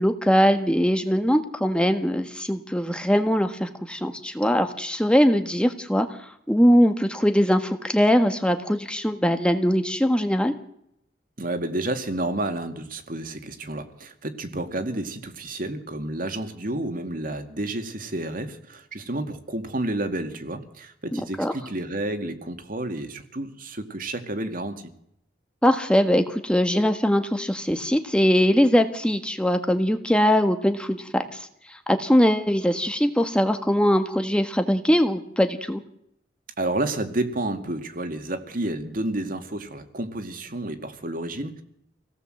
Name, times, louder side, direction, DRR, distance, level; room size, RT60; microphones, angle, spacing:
voice 1, 0.0-10.5 21.1-21.5 25.6-35.8, equal, 5° left, 7 dB, 1.5 m, -21 dB
voice 2, 11.4-24.8 36.6-41.6, right 1 dB, 50° right, 8 dB, 2.3 m, -30 dB
27.0 x 17.5 x 7.8 m, 0.76 s
head